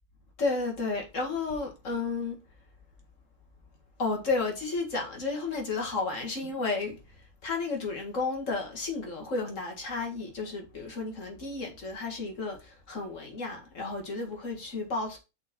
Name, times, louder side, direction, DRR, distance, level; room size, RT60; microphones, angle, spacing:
voice 1, 0.4-2.4 4.0-15.2, left 3 dB, 60° left, 2.3 m, -32 dB
6.0 x 4.4 x 6.0 m
omnidirectional pair, 1.5 m